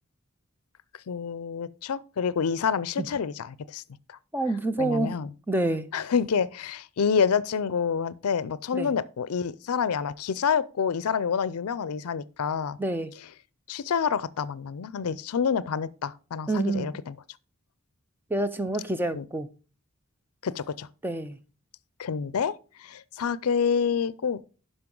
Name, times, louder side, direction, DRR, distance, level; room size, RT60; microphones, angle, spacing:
voice 1, 1.1-3.8 4.1-4.2 4.8-5.3 5.9-12.8 13.7-17.2 19.1-19.2 20.4-20.9 22.0-22.5 22.8-24.4, left 6 dB, 80° left, 0.5 m, -28 dB
voice 2, 4.3-5.2 5.5-5.9 8.7-8.9 12.8-13.1 16.5-17.0 18.3-19.5 21.0-21.4, right 2 dB, 10° right, 0.4 m, -27 dB
12.0 x 5.2 x 3.8 m
head